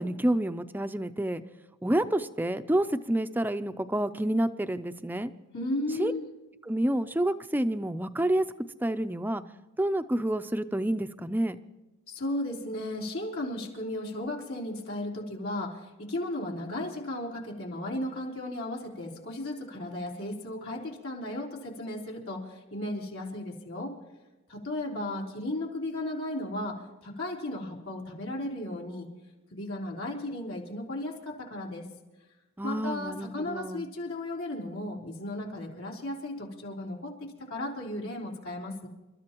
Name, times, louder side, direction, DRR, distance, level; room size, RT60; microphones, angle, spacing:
voice 1, 0.0-1.4 1.8-5.3 6.0-6.1 6.7-8.4 8.8-9.4 9.8-11.6 32.6-33.8, right 1 dB, 10° right, 10 dB, 0.5 m, -28 dB
voice 2, 5.5-6.2 12.1-23.9 24.5-26.8 27.0-29.1 29.5-31.9 32.6-38.9, left 1 dB, 85° left, -2 dB, 3.7 m, -35 dB
30.0 x 13.5 x 3.0 m, 1.1 s
head